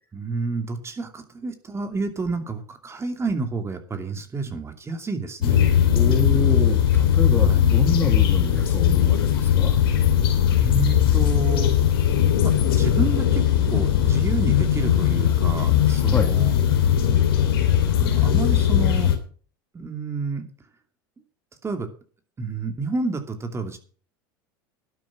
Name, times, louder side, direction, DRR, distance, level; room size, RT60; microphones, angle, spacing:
voice 1, 0.1-5.6 7.3-7.8 10.5-11.8 12.4-16.5 18.0-19.2 19.7-20.5 21.6-21.9 22.4-23.8, right 4 dB, 20° right, 6 dB, 2.7 m, -29 dB
sound 1, 5.4-19.2, left 10 dB, 85° left, 2.9 m, -19 dB
voice 2, 5.9-9.8 16.0-16.3, left 3 dB, 15° left, 7 dB, 2.0 m, -28 dB
12.0 x 9.6 x 5.9 m, 0.40 s
hypercardioid pair, 95°, 12 cm